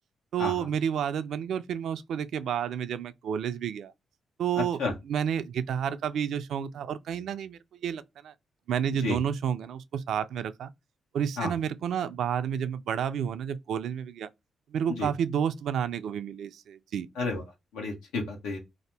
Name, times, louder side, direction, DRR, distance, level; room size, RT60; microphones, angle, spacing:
voice 1, 0.3-3.9 4.4-8.3 8.7-10.7 11.1-14.3 14.7-17.1, right 8 dB, 75° right, 0.3 m, -30 dB
voice 2, 17.7-18.6, left 3 dB, 85° left, 0.9 m, -31 dB
2.7 x 2.0 x 3.2 m
supercardioid pair, 50°, 0 cm